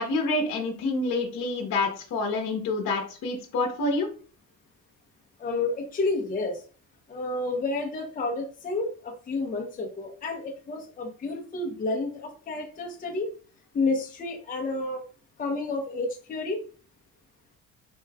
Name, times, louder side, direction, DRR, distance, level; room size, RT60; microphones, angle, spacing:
voice 1, 0.0-4.1, left 2 dB, 55° left, 1 dB, 1.0 m, -27 dB
voice 2, 5.4-6.6 7.1-13.3 13.7-15.0 15.4-16.6, left 3 dB, 25° left, 1 dB, 0.7 m, -30 dB
4.5 x 3.0 x 2.3 m, 0.40 s
cardioid pair, 130°, 33 cm